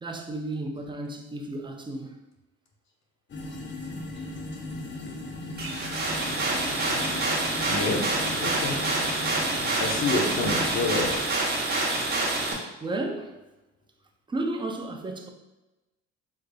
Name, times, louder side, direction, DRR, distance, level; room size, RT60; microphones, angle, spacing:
voice 1, 0.0-2.2 12.8-13.4 14.3-15.3, right 2 dB, 15° right, 0.4 m, -33 dB
sound 1, 3.3-11.2, left 2 dB, 40° left, 0.7 m, -37 dB
sound 2, 5.6-12.5, right 2 dB, 35° right, 0.9 m, -27 dB
voice 2, 7.7-8.0 8.4-8.8 9.8-11.3, left 3 dB, 65° left, 0.8 m, -28 dB
3.8 x 3.2 x 2.2 m
cardioid pair, 90°, 30 cm